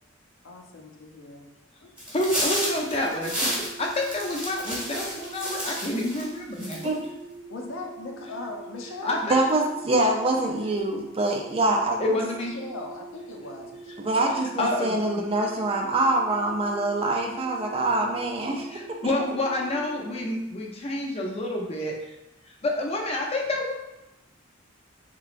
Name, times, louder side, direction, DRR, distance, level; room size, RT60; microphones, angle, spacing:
voice 1, 0.4-1.5 1.8-1.9 6.8-7.1 7.5-9.2 12.1-14.1, left 3 dB, 75° left, 1 dB, 0.6 m, -39 dB
sound 1, 2.0-6.3 6.6-7.0, equal, 5° right, 1.1 m, -31 dB
voice 2, 2.1-3.5 3.8-6.8 9.0-9.4 12.0-12.5 14.6-15.0 18.7-21.9 22.6-23.7, left 1 dB, 30° left, 0 dB, 0.5 m, -28 dB
sound 2, 2.5-20.3, right 3 dB, 80° right, 0.7 m, -44 dB
voice 3, 9.3-12.2 14.0-18.7 19.0-19.1, right 2 dB, 30° right, 1 dB, 0.4 m, -25 dB
3.5 x 3.0 x 2.4 m, 0.94 s
head